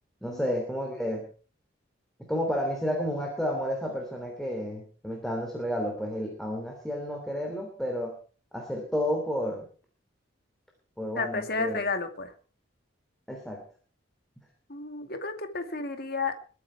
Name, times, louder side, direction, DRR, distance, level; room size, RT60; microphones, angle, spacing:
voice 1, 0.2-1.3 2.2-8.1 8.5-9.7 11.0-11.8 13.3-13.6, equal, ahead, 1 dB, 3.3 m, -31 dB
voice 2, 11.2-12.3 14.7-16.3, left 3 dB, 50° left, 7 dB, 2.3 m, -32 dB
22.5 x 9.6 x 4.7 m, 0.40 s
head